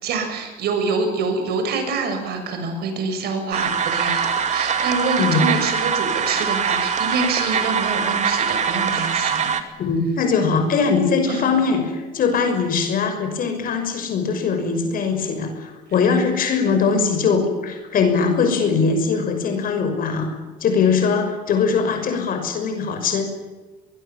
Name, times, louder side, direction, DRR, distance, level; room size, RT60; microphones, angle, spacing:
voice 1, 0.0-9.5 11.3-11.5, right 4 dB, 70° right, 6 dB, 7.0 m, -26 dB
sound 1, 3.5-9.6, right 6 dB, 45° right, 2.6 m, -22 dB
voice 2, 9.8-20.3 20.6-23.2, left 5 dB, 55° left, 5 dB, 6.0 m, -21 dB
23.5 x 21.5 x 7.5 m, 1.2 s
cardioid pair, 110°, 17 cm